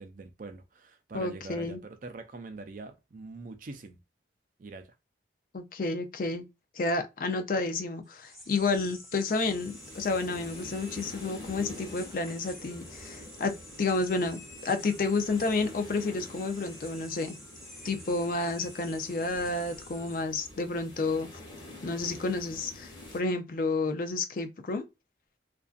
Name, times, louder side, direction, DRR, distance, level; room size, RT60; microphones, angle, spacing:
voice 1, 0.0-4.0 4.6-4.9, right 3 dB, 45° right, 0.4 m, -44 dB
voice 2, 1.1-1.8 5.5-6.4 6.8-17.4 17.8-21.3 21.8-24.9, left 3 dB, 45° left, 0.4 m, -30 dB
sound 1, 8.0-20.9, left 1 dB, ahead, 0.7 m, -50 dB
sound 2, 9.4-23.2, left 1 dB, 25° left, 1.1 m, -47 dB
2.5 x 2.3 x 2.4 m
head